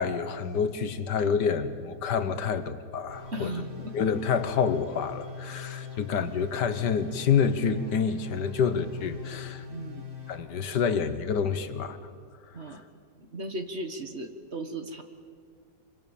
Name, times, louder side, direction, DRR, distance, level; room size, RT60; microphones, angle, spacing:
voice 1, 0.0-3.5 3.9-9.6 10.3-12.0, left 6 dB, 85° left, 1.8 m, -28 dB
sound 1, 3.1-10.4, left 6 dB, 65° right, 3.8 m, -41 dB
voice 2, 3.3-3.9 5.9-6.0 9.7-10.0 12.5-12.8 13.2-15.0, right 1 dB, 40° right, 1.6 m, -36 dB
25.0 x 25.0 x 7.2 m
omnidirectional pair, 1.8 m